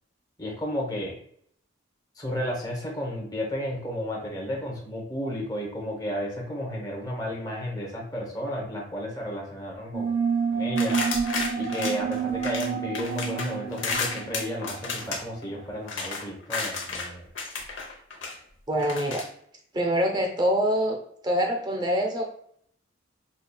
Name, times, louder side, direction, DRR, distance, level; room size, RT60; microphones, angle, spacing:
voice 1, 0.4-1.2 2.2-10.1 10.5-11.0 11.5-17.2, equal, 20° left, -1 dB, 0.9 m, -33 dB
sound 1, 9.9-15.1, right 6 dB, 65° right, 0.7 m, -29 dB
sound 2, 10.8-12.7 12.9-17.1 17.3-18.3 18.8-19.3, left 4 dB, 75° left, 0.8 m, -32 dB
voice 2, 18.7-19.2 19.7-21.0 21.2-22.2, equal, 20° right, 2 dB, 0.6 m, -25 dB
5.4 x 2.3 x 2.2 m, 0.66 s
head